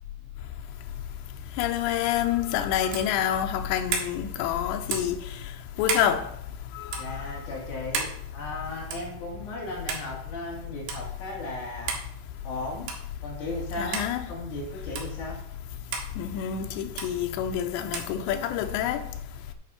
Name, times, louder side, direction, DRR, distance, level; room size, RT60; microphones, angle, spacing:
voice 1, 1.6-5.2 5.8-6.3 6.8-6.9 13.8-14.2 16.2-19.0, left 10 dB, 85° left, 3.0 m, -27 dB
sound 1, 2.9-3.1 3.9-4.1 4.9-5.2 5.9-6.1 6.9-7.1 7.9-8.2 8.9-9.1 9.9-10.1 10.9-11.0 11.9-12.1 12.9-13.1 13.9-14.1 15.0-15.1 15.9-16.1 17.0-17.1 17.9-18.1, right 5 dB, 85° right, 3.8 m, -31 dB
voice 2, 7.0-8.1 8.3-11.9 12.4-12.9 13.2-14.0 14.3-15.4, left 2 dB, 50° left, 3.8 m, -36 dB
9.7 x 5.2 x 5.7 m
omnidirectional pair, 4.9 m